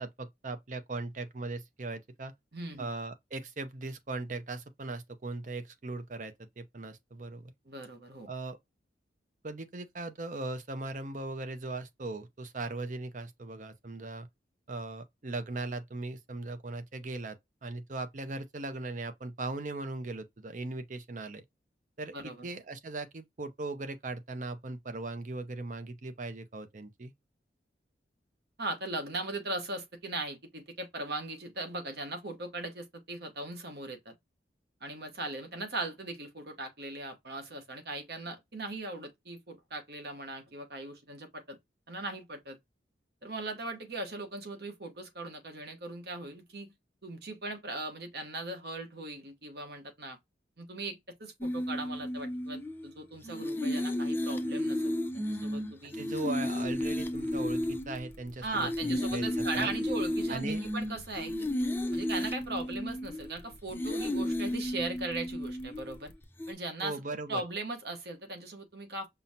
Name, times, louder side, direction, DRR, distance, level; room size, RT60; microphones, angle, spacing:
voice 1, 0.0-2.3 2.8-7.5 8.3-8.6 9.4-14.3 14.7-21.4 22.0-27.1 55.9-59.7 60.3-60.6 66.8-67.4, right 2 dB, 45° right, 0.6 m, -39 dB
voice 2, 2.5-2.9 7.6-8.3 22.1-22.5 28.6-34.1 34.8-41.6 41.9-42.6 43.2-46.7 47.0-50.2 50.6-55.9 58.4-61.5 61.9-66.1 66.5-67.0 67.3-69.1, right 2 dB, 60° right, 1.1 m, -39 dB
sound 1, 51.4-52.9 53.2-58.1 58.5-63.4 63.7-66.0 66.4-66.5, left 1 dB, 10° left, 0.5 m, -33 dB
sound 2, 56.6-66.2, left 1 dB, 80° left, 0.8 m, -54 dB
5.5 x 2.1 x 2.7 m
head